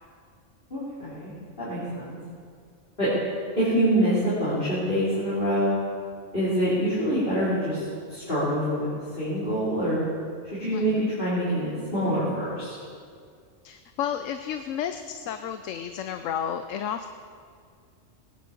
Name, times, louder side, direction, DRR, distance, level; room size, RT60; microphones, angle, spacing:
voice 1, 0.7-1.3 1.6-2.2 3.0-3.1 3.6-5.7 6.3-8.9 9.2-10.0 10.5-12.8, equal, 45° left, -11 dB, 4.2 m, -25 dB
voice 2, 10.7-11.1 13.6-17.1, left 8 dB, 75° left, 8 dB, 1.0 m, -32 dB
20.0 x 10.5 x 5.0 m, 2.1 s
omnidirectional pair, 1.3 m